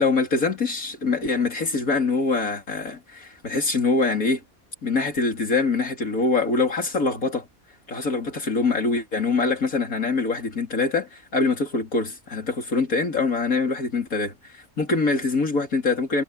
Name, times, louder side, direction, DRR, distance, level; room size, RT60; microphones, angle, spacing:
voice 1, 0.0-4.4 4.8-7.5 7.9-16.2, left 3 dB, 75° left, 4.0 m, -24 dB
omnidirectional pair, 1.5 m